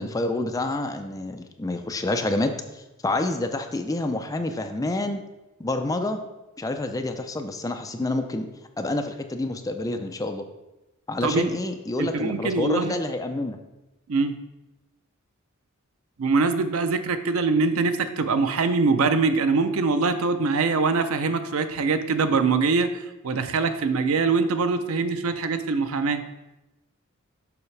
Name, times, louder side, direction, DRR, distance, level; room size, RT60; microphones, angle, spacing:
voice 1, 0.0-5.2 5.6-6.2 6.6-8.5 8.8-10.4 11.1-13.6, left 2 dB, 15° left, 6 dB, 0.4 m, -28 dB
voice 2, 11.2-11.6 12.0-12.9 14.1-14.3 16.2-26.2, right 4 dB, 80° right, 10 dB, 0.5 m, -23 dB
7.0 x 5.5 x 3.3 m, 1.0 s
head